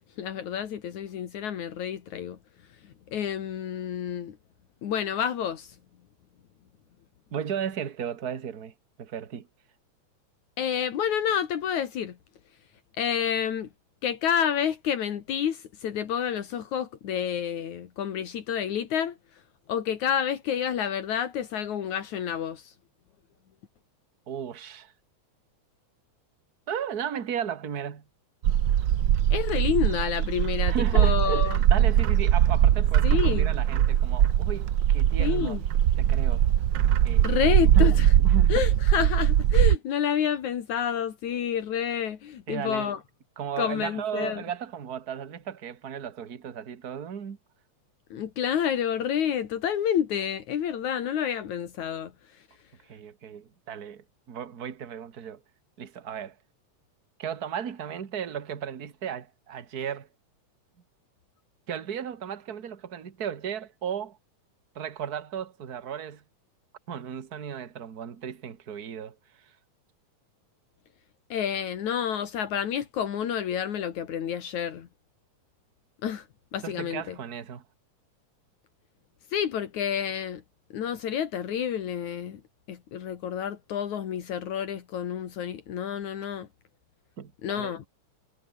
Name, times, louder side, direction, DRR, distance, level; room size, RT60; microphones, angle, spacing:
voice 1, 0.2-2.4 3.1-4.4 4.8-5.8 10.6-12.2 13.0-13.7 14.0-19.2 19.7-22.7 29.3-31.6 33.0-33.5 35.2-35.6 37.2-38.1 38.5-43.0 43.6-44.4 48.1-52.1 71.3-74.9 76.0-76.3 76.5-77.1 79.3-80.4 80.7-82.4 82.7-86.5 87.4-87.9, left 9 dB, 75° left, 3.3 m, -29 dB
voice 2, 7.3-9.5 24.3-24.9 26.7-28.0 30.7-35.6 36.0-36.5 37.0-38.6 42.5-43.0 43.4-47.4 52.8-55.4 55.8-56.4 57.2-60.1 61.7-64.2 64.8-66.2 66.9-69.6 76.6-77.6 87.2-87.7, right 8 dB, 35° right, 1.9 m, -35 dB
Bird, 28.4-39.8, right 11 dB, 75° right, 1.0 m, -21 dB
omnidirectional pair, 3.4 m